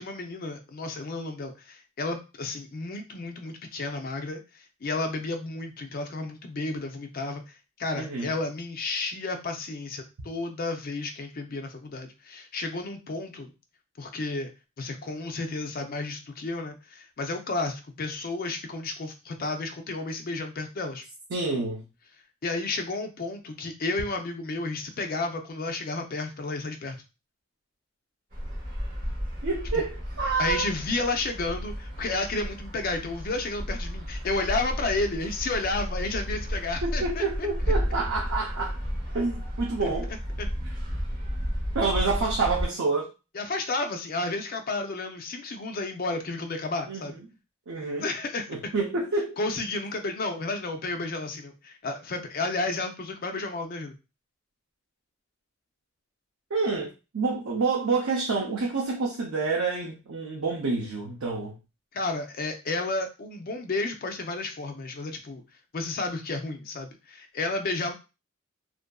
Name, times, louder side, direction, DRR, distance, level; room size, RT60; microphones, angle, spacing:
voice 1, 0.0-7.4 7.8-13.5 14.0-14.5 14.8-21.1 22.4-27.0 29.7-29.8 30.4-37.2 39.8-39.9 40.4-40.5 43.4-47.1 48.0-48.7 49.4-53.9 61.9-65.4 65.7-67.9, left 3 dB, 45° left, 5 dB, 0.4 m, -32 dB
voice 2, 7.9-8.3 21.3-21.9 29.4-30.7 36.8-38.8 39.1-40.1 40.6-40.8 41.7-43.1 46.9-47.3 47.7-48.1 48.5-49.4 56.5-61.6, right 3 dB, 75° right, -2 dB, 0.6 m, -28 dB
sound 1, 28.3-42.7, equal, 45° right, 1.0 m, -32 dB
2.7 x 2.5 x 2.2 m, 0.29 s
head